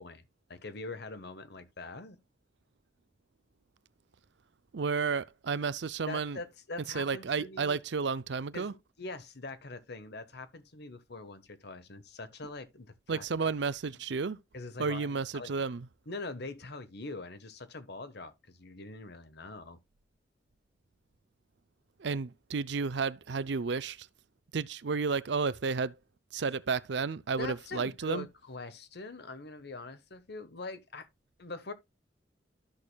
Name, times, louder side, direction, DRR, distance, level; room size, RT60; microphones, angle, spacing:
voice 1, 0.0-2.2 6.1-7.8 8.5-13.2 13.9-14.0 14.5-15.6 16.1-19.8 26.4-26.5 27.4-31.1 31.4-31.7, left 3 dB, 65° left, 1.3 m, -43 dB
voice 2, 4.7-6.4 6.9-8.7 13.1-14.4 14.8-15.9 22.0-24.1 24.5-26.0 26.3-28.3, right 5 dB, 70° right, 0.6 m, -32 dB
13.5 x 6.4 x 2.3 m
head